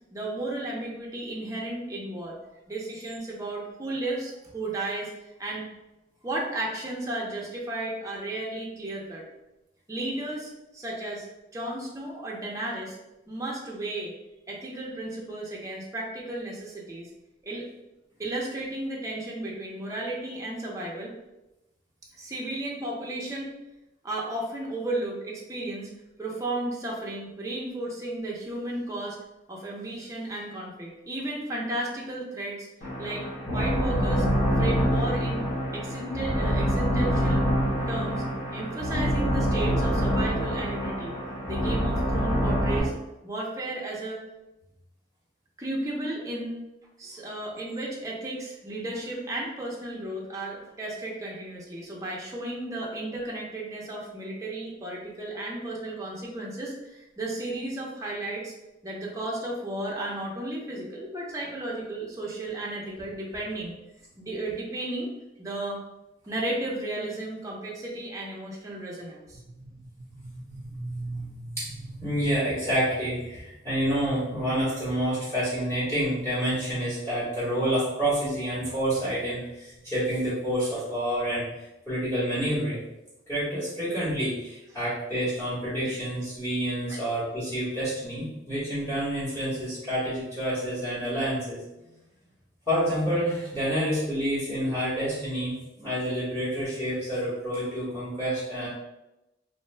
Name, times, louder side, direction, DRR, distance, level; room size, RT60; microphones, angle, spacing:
voice 1, 0.1-2.4 2.7-5.1 5.4-5.7 6.2-9.2 9.9-11.3 11.5-13.0 13.3-14.1 14.5-17.1 17.4-17.7 18.2-21.1 22.2-23.6 24.0-25.9 26.2-29.2 29.5-32.7 33.0-33.2 33.5-34.3 34.6-35.5 35.7-37.5 37.9-38.3 38.5-41.2 41.5-42.9 43.2-44.2 45.6-46.6 47.0-58.5 58.8-63.7 64.2-65.1 65.4-65.8 66.3-69.4 85.8-85.9 86.9-87.0, right 1 dB, 20° right, -4 dB, 0.5 m, -34 dB
sound 1, 32.8-42.8, equal, 45° left, 1.1 m, -26 dB
voice 2, 70.0-81.4 81.9-82.8 83.3-91.6 92.7-98.7, equal, 15° left, -11 dB, 1.1 m, -28 dB
2.5 x 2.2 x 3.2 m, 0.96 s
head